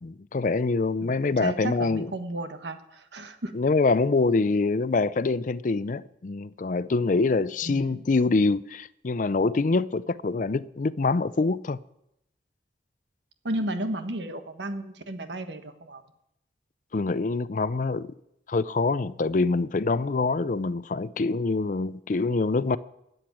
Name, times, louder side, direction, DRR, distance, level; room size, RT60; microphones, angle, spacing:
voice 1, 0.0-2.1 3.5-11.8 16.9-18.1 18.5-22.8, left 3 dB, 45° left, 0.5 m, -25 dB
voice 2, 1.0-3.5 7.6-8.0 13.4-16.0, right 1 dB, 85° right, 1.4 m, -33 dB
13.0 x 8.0 x 9.1 m
head